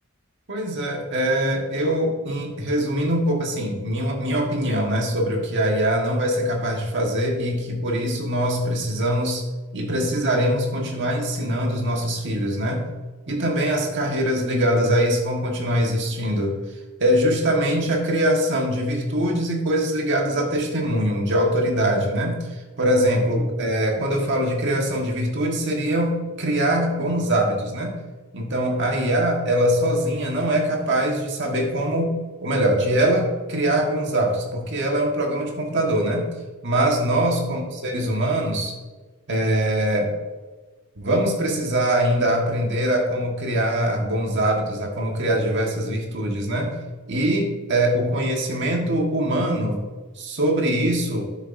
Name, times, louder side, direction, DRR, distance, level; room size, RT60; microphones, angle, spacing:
voice 1, 0.5-9.4 9.7-12.9 13.3-16.6 17.0-28.0 28.3-36.3 36.6-38.7 39.3-40.1 41.0-46.7 47.1-49.8 50.2-51.3, right 1 dB, 55° right, 0 dB, 1.5 m, -23 dB
12.0 x 7.0 x 2.7 m, 1.3 s
head